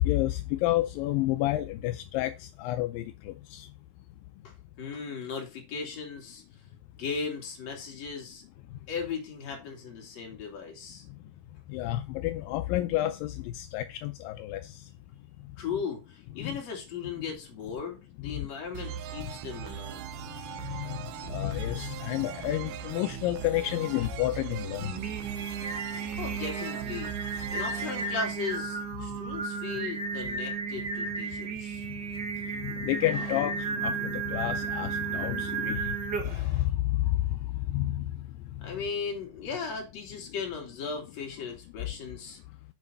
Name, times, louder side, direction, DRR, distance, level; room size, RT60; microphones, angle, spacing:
voice 1, 0.0-3.7 11.7-14.8 16.4-16.6 18.2-18.5 20.6-21.0 21.3-25.0 32.6-36.0 36.3-37.2 37.7-38.1, left 15 dB, 85° left, 2.3 m, -30 dB
voice 2, 4.4-6.4 7.0-8.4 8.9-11.0 15.6-20.0 26.1-27.1 27.5-31.8 38.6-42.4, left 5 dB, 50° left, 3.3 m, -37 dB
sound 1, 18.7-29.3, right 10 dB, 75° right, 2.1 m, -40 dB
Singing, 24.8-36.5, right 5 dB, 45° right, 1.5 m, -34 dB
7.4 x 5.8 x 5.4 m
omnidirectional pair, 4.0 m